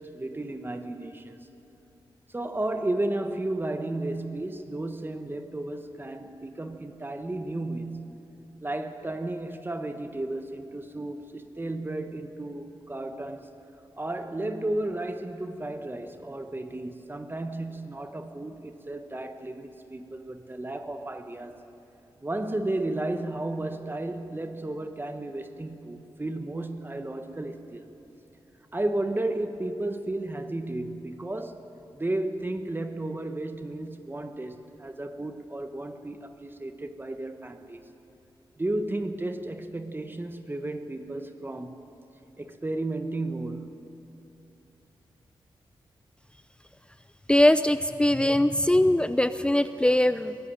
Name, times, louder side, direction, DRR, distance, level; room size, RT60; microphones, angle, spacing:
voice 1, 0.0-1.4 2.3-8.3 8.6-13.5 14.0-21.6 22.2-27.9 28.7-31.6 31.9-37.8 38.6-41.8 42.4-43.9, right 2 dB, 25° right, 7 dB, 1.3 m, -33 dB
voice 2, 47.3-50.4, left 1 dB, 10° left, 11 dB, 0.6 m, -21 dB
23.5 x 14.0 x 8.9 m, 2.9 s
cardioid pair, 60°, 9 cm